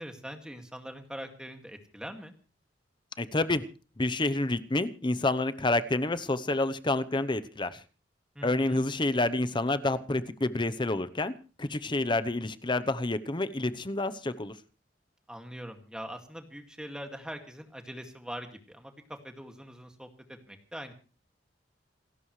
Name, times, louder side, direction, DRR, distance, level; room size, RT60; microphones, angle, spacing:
voice 1, 0.0-2.3 8.4-8.8 12.0-12.1 15.3-20.9, equal, 5° right, 5 dB, 2.2 m, -43 dB
voice 2, 3.2-3.7 4.0-7.8 8.4-14.5, left 2 dB, 25° left, 12 dB, 0.9 m, -28 dB
28.0 x 13.0 x 3.3 m, 0.37 s
head